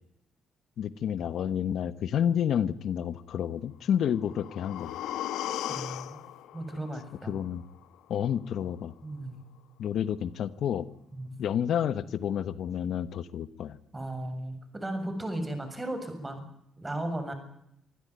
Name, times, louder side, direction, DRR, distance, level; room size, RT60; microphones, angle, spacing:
voice 1, 0.8-4.9 7.3-7.6 8.1-8.9 9.8-10.9 11.4-13.8, left 9 dB, 70° left, 15 dB, 1.1 m, -29 dB
sound 1, 4.0-8.0 8.4-8.5, left 12 dB, 85° left, 1.3 m, -38 dB
voice 2, 5.7-6.2 6.5-7.4 9.0-9.4 11.1-11.4 13.9-16.5 16.8-17.3, right 1 dB, 15° right, 8 dB, 7.0 m, -36 dB
26.0 x 15.5 x 9.6 m, 0.77 s
cardioid pair, 90°, 0 cm